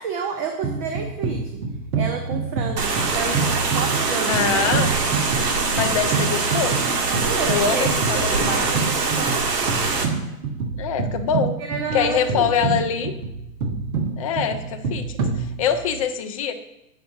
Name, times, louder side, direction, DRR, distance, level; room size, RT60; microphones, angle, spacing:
voice 1, 0.0-1.4 1.9-4.7 7.2-9.4 11.7-12.7, right 5 dB, 25° right, 4 dB, 0.5 m, -30 dB
sound 1, 0.6-16.0, right 4 dB, 60° right, 1.4 m, -27 dB
sound 2, 2.8-10.1, right 4 dB, 80° right, 1.7 m, -23 dB
voice 2, 4.3-4.9 5.7-6.9 7.5-8.7 10.8-11.6 11.9-13.1 14.2-16.5, left 7 dB, 25° left, 6 dB, 0.4 m, -24 dB
8.3 x 5.9 x 4.3 m, 0.91 s
hypercardioid pair, 135°, 47 cm